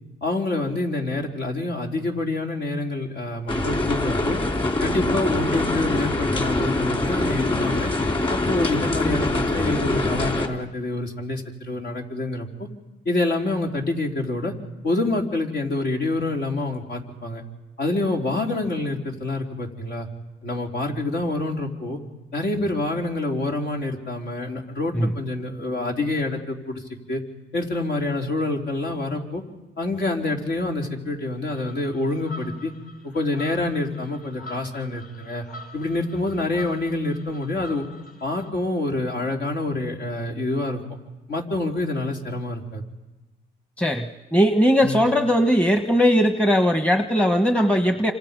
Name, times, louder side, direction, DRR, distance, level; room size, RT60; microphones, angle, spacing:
voice 1, 0.2-4.4 4.8-7.9 8.3-12.7 13.1-14.5 14.8-17.4 17.8-20.1 20.4-22.0 22.3-26.8 27.1-27.2 27.5-29.4 29.8-32.7 33.0-35.4 35.7-37.8 38.2-40.8 41.3-42.8 44.8-45.0, left 2 dB, 65° left, 1 dB, 4.0 m, -27 dB
sound 1, 3.5-10.5, left 2 dB, 25° left, 3.6 m, -24 dB
sound 2, 31.5-38.5, left 1 dB, 45° left, 5.4 m, -45 dB
voice 2, 43.8-48.1, equal, 5° left, 6 dB, 1.3 m, -19 dB
28.5 x 26.5 x 5.4 m, 1.1 s
cardioid pair, 90°, 20 cm